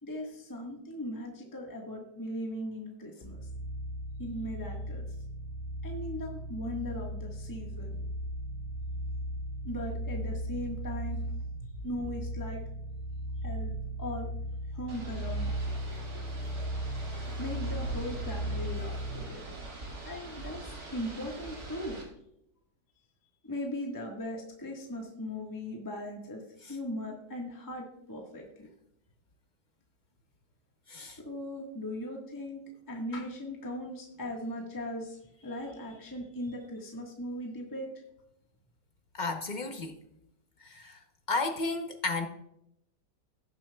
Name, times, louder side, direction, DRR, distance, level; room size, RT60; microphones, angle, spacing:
voice 1, 0.0-3.4 4.2-5.0 5.8-7.9 9.6-11.3 11.8-12.6 13.4-13.7 14.0-14.3 14.7-15.5 17.4-19.6 20.0-22.0 23.4-26.4 26.7-28.7 31.2-32.6 32.9-37.9, left 1 dB, 10° left, 0 dB, 1.4 m, -38 dB
sound 1, 3.2-19.4, right 1 dB, 30° left, 1.4 m, -37 dB
sound 2, 14.9-22.0, right 2 dB, 55° right, 2.8 m, -44 dB
voice 2, 39.1-40.0 40.6-41.0 41.3-42.3, left 3 dB, 45° left, 6 dB, 0.6 m, -33 dB
18.0 x 7.3 x 2.3 m, 0.77 s
omnidirectional pair, 1.9 m